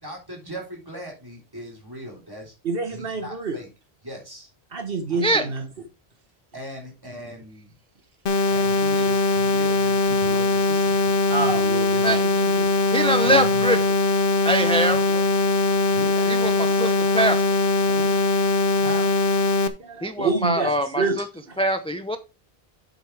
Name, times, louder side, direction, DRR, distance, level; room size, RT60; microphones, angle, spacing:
voice 1, 0.0-2.5 2.9-3.7 4.0-4.5 5.1-5.5 6.5-7.7 8.5-11.2 13.2-13.8 14.9-15.3 15.9-17.2 18.8-19.1, equal, 20° right, -1 dB, 3.6 m, -39 dB
voice 2, 2.6-3.6 4.7-5.7 11.3-12.7 17.9-18.2 19.8-21.2 21.5-21.6, right 4 dB, 65° right, 6 dB, 1.3 m, -28 dB
sound 1, 8.3-19.7, left 3 dB, 60° left, 1.1 m, -21 dB
voice 3, 12.9-13.8 14.4-15.0 16.3-16.5 16.8-16.9 17.1-17.4 20.0-21.2 21.6-22.2, right 1 dB, 5° left, 9 dB, 0.5 m, -22 dB
8.2 x 8.0 x 3.4 m, 0.29 s
omnidirectional pair, 1.0 m